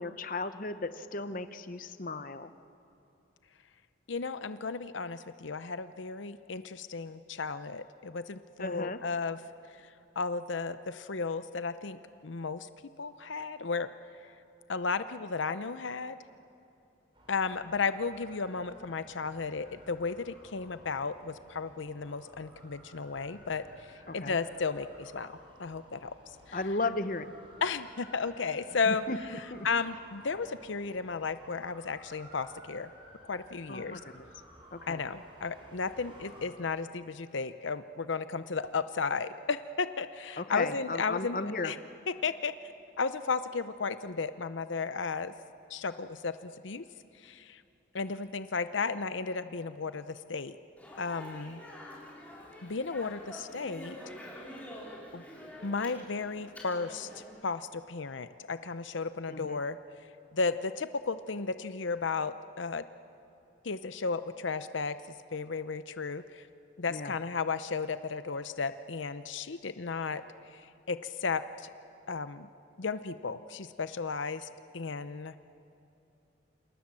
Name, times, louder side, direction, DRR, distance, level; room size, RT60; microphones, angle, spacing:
voice 1, 0.0-2.5 8.6-9.0 24.1-24.4 26.5-27.3 28.9-29.7 33.7-34.2 34.7-35.0 40.4-41.7 59.3-59.6 66.9-67.2, left 3 dB, 45° left, 11 dB, 0.9 m, -35 dB
voice 2, 4.1-9.4 10.2-12.7 13.0-13.9 14.2-14.3 14.7-16.2 17.3-25.3 25.6-26.6 27.6-29.0 29.6-32.9 33.2-34.0 34.9-41.8 42.2-42.5 43.0-45.3 45.7-46.8 47.2-47.6 47.9-50.5 51.0-51.6 52.6-54.0 55.1-55.2 55.6-59.8 60.3-62.8 63.6-65.0 65.3-66.5 66.8-70.2 70.5-71.7 72.1-72.5 72.8-74.5 74.7-75.4, left 4 dB, 75° left, 12 dB, 0.7 m, -34 dB
sound 1, 17.1-36.5, right 1 dB, 25° right, 5.2 m, -56 dB
Speech, 50.8-57.2, left 1 dB, 10° left, 5.1 m, -47 dB
28.5 x 27.0 x 7.6 m, 2.8 s
head